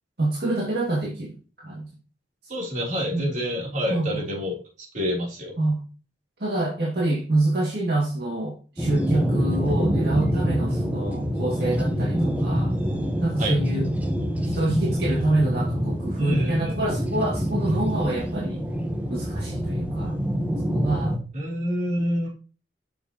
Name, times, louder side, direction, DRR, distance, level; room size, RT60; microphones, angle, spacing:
voice 1, 0.2-1.9 3.1-3.3 3.9-4.2 5.6-5.9 6.4-12.7 13.2-13.9 14.4-18.6 19.1-20.1 20.7-21.1, right 2 dB, 60° right, -4 dB, 2.0 m, -26 dB
voice 2, 2.5-5.5 13.4-13.6 16.2-16.9 21.3-22.3, equal, 45° right, -2 dB, 3.2 m, -27 dB
sound 1, 8.8-21.2, equal, 10° right, 1.0 m, -26 dB
7.0 x 6.9 x 2.9 m, 0.35 s
head